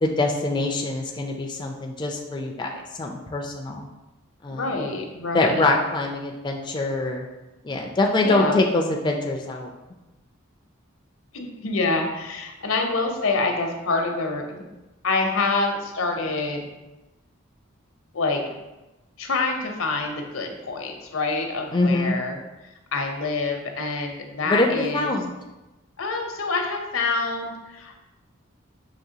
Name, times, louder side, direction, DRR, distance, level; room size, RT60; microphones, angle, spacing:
voice 1, 0.0-3.9 4.4-4.7 5.3-7.2 7.6-9.7 21.7-22.2 24.5-25.3, left 2 dB, 20° left, 1 dB, 0.3 m, -24 dB
voice 2, 4.5-5.7 8.2-8.6 11.3-14.7 15.0-16.6 18.1-18.5 19.2-22.4 22.9-25.1 26.0-28.0, left 3 dB, 80° left, 3 dB, 0.7 m, -26 dB
5.8 x 3.1 x 2.7 m, 1.0 s
head